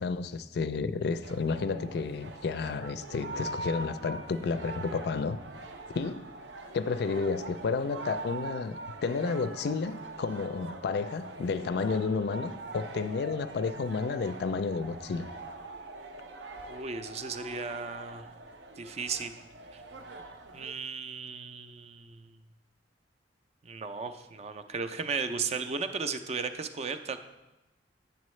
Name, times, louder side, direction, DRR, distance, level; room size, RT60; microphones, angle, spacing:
voice 1, 0.0-5.4 5.9-6.3 6.7-15.3, left 4 dB, 65° left, 0.4 m, -31 dB
sound 1, 1.2-20.7, right 2 dB, 80° right, 0.6 m, -43 dB
voice 2, 16.7-18.3 18.8-19.3 19.7-19.8 20.5-22.3 23.7-27.2, right 5 dB, 35° right, 0.4 m, -35 dB
8.4 x 6.9 x 3.1 m
head